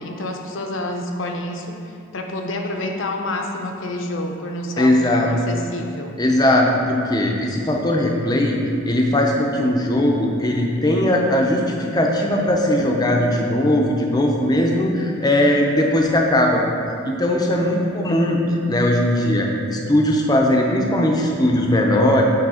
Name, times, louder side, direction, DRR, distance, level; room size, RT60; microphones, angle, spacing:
voice 1, 0.0-6.2, left 1 dB, 60° left, 3 dB, 0.6 m, -28 dB
voice 2, 4.8-5.3 6.2-8.6 8.8-16.6 17.0-18.4 18.7-22.2, left 1 dB, 20° left, 0 dB, 0.6 m, -19 dB
8.6 x 3.4 x 4.9 m, 2.6 s
head